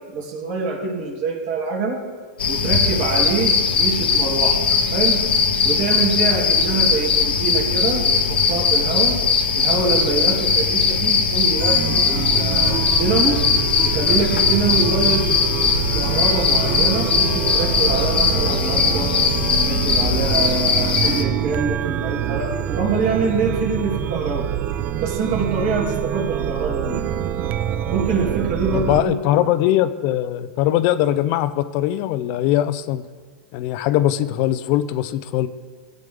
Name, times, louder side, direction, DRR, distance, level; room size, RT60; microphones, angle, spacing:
voice 1, 0.1-2.0 2.5-5.2 5.6-9.2 9.5-13.4 13.8-15.2 15.9-19.1 19.6-24.5 25.0-27.0 27.9-29.1, right 4 dB, 60° right, -1 dB, 2.5 m, -25 dB
sound 1, 2.4-21.2, left 5 dB, 90° left, 1.1 m, -19 dB
Chime, 11.6-29.0, right 11 dB, 40° right, 0.4 m, -26 dB
voice 2, 28.7-33.0 33.5-35.5, left 13 dB, 50° left, 14 dB, 0.5 m, -21 dB
14.0 x 9.0 x 3.6 m, 1.5 s
hypercardioid pair, 115°, 5 cm